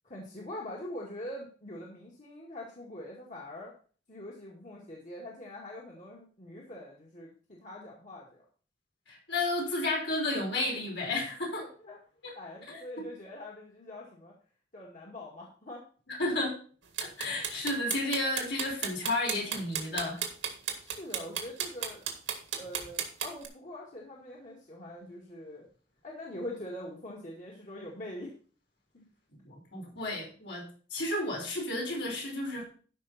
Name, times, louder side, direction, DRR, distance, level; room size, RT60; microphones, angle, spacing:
voice 1, 0.0-3.7 4.1-8.4 11.6-12.0 12.4-14.3 14.7-15.8 20.8-22.0 22.5-25.7 26.0-28.3 28.9-29.1, left 1 dB, 40° left, -4 dB, 2.1 m, -43 dB
voice 2, 9.1-11.7 12.2-12.3 12.7-13.1 16.1-16.6 17.0-20.2 29.3-32.7, left 2 dB, 70° left, -1 dB, 4.8 m, -32 dB
sound 1, 17.0-23.5, right 8 dB, 85° right, 2.0 m, -34 dB
13.0 x 5.7 x 4.2 m, 0.42 s
head